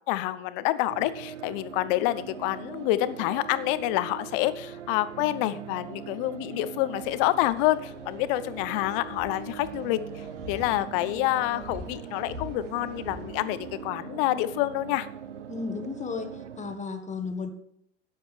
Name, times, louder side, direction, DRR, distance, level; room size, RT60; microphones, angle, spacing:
voice 1, 0.1-10.0 10.5-15.1, left 16 dB, 50° left, 15 dB, 0.9 m, -27 dB
sound 1, 0.9-16.8, right 8 dB, 80° right, 0.7 m, -41 dB
sound 2, 6.9-13.9, equal, 50° right, 4.7 m, -46 dB
voice 2, 15.5-17.5, left 5 dB, 20° left, 8 dB, 1.6 m, -34 dB
13.5 x 9.8 x 3.5 m, 0.75 s
figure-of-eight pair, 80°, 35 cm